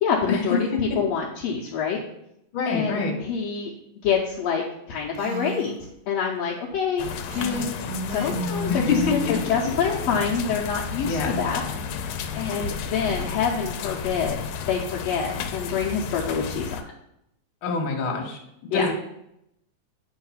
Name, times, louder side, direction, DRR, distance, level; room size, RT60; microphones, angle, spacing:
voice 1, 0.0-2.0 2.7-3.7 4.0-5.7 6.1-7.1 7.3-7.8 8.1-9.0 9.3-11.6 12.3-14.4 14.7-16.8 18.7-18.9, left 6 dB, 70° left, -2 dB, 1.9 m, -26 dB
voice 2, 2.5-3.2 8.7-9.1 11.0-11.4 17.6-18.4 18.7-18.9, left 4 dB, 50° left, 1 dB, 2.0 m, -25 dB
Female speech woman speaking, 5.1-5.8 7.3-9.5, left 1 dB, 70° right, 1.7 m, -32 dB
sound 1, 7.0-16.8, left 6 dB, 90° left, 2.0 m, -32 dB
8.8 x 3.7 x 5.7 m, 0.80 s
omnidirectional pair, 3.3 m